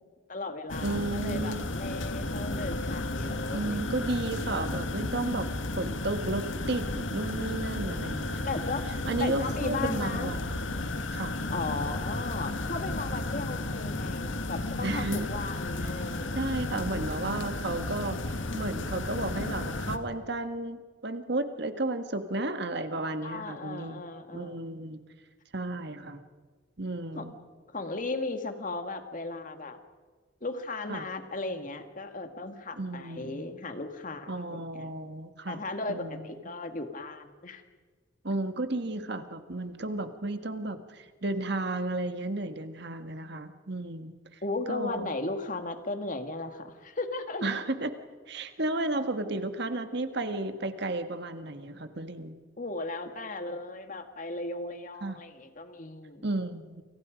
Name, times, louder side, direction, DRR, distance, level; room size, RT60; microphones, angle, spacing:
voice 1, 0.3-3.9 8.5-8.9 9.2-10.3 11.5-16.5 23.2-24.6 27.2-27.3 27.7-29.8 30.4-34.8 35.5-37.6 44.4-47.5 52.6-56.2, left 2 dB, 40° left, 7 dB, 2.1 m, -36 dB
sound 1, 0.7-20.0, left 2 dB, 75° left, 1.7 m, -33 dB
voice 2, 0.8-1.7 3.5-5.5 5.8-8.6 9.1-10.6 11.1-11.3 14.8-15.3 16.4-24.0 24.3-25.0 25.5-26.2 26.8-27.3 30.9-31.1 32.8-33.5 34.3-35.6 35.9-36.3 38.2-44.1 44.7-45.1 47.4-47.9 48.3-52.4 55.0-55.2 56.2-56.8, right 2 dB, 60° right, 8 dB, 1.7 m, -33 dB
28.5 x 28.0 x 5.3 m, 1.5 s
head